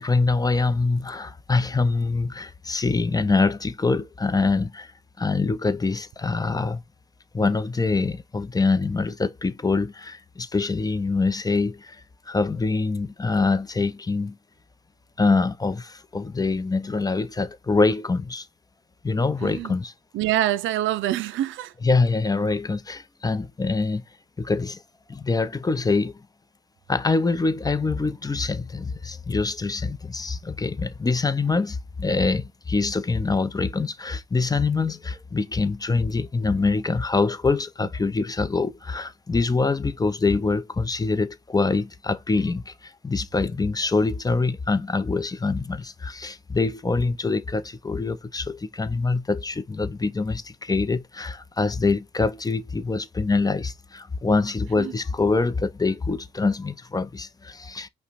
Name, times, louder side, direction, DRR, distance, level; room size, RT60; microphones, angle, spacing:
voice 1, 0.0-4.9 5.2-6.8 7.3-14.4 15.2-18.5 19.0-19.9 21.8-24.0 24.4-24.8 25.1-26.2 26.9-57.9, left 3 dB, 20° left, 0.6 m, -24 dB
voice 2, 19.4-19.8 20.1-21.7 54.8-54.9, right 13 dB, 75° right, 0.5 m, -25 dB
5.5 x 2.2 x 4.1 m
cardioid pair, 90°, 20 cm